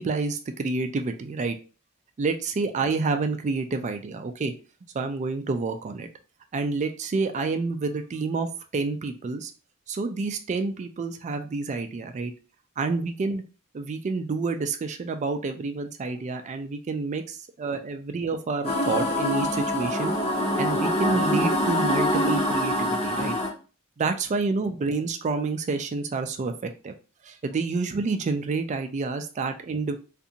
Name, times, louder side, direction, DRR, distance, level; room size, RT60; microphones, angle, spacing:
voice 1, 0.0-1.6 2.2-4.5 4.9-6.1 6.5-8.5 8.7-9.5 9.9-12.3 12.8-13.4 13.7-20.1 20.6-23.3 24.0-26.9 27.2-30.0, right 4 dB, 35° right, 7 dB, 0.3 m, -28 dB
sound 1, 18.6-23.5, left 1 dB, 25° left, 0.8 m, -25 dB
2.5 x 2.4 x 2.7 m, 0.35 s
head